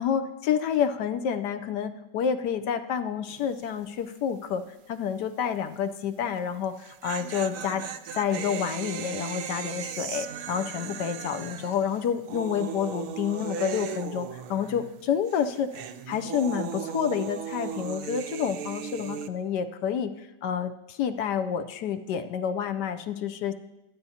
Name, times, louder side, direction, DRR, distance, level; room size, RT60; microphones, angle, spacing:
voice 1, 0.0-4.6 4.9-7.8 8.1-15.7 16.1-20.1 20.4-23.5, left 8 dB, 70° left, 7 dB, 1.2 m, -29 dB
sound 1, 3.3-3.6 3.9-4.0 6.6-15.0 15.3-19.3, right 8 dB, 70° right, 1.0 m, -37 dB
21.5 x 9.3 x 2.8 m, 0.99 s
omnidirectional pair, 1.9 m